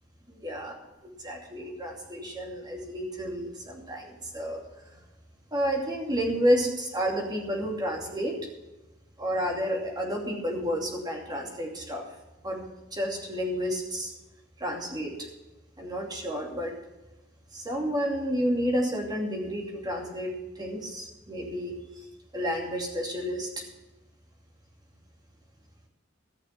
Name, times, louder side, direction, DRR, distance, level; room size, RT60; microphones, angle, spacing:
voice 1, 0.3-0.7 1.0-5.0 5.5-8.4 9.2-12.0 12.4-14.1 14.6-15.3 15.8-16.7 17.5-21.8 22.3-23.7, equal, 20° right, 0 dB, 2.7 m, -30 dB
14.5 x 6.5 x 7.5 m, 1.0 s
head